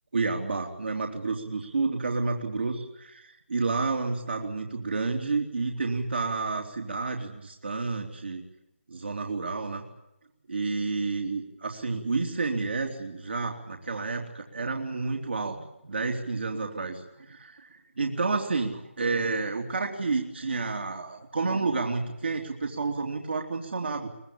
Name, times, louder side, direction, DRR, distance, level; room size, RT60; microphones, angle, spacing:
voice 1, 0.1-8.4 8.9-9.8 10.5-24.1, right 3 dB, 55° right, 2 dB, 3.4 m, -30 dB
23.5 x 22.0 x 8.9 m, 0.89 s
figure-of-eight pair, 160°, 7 cm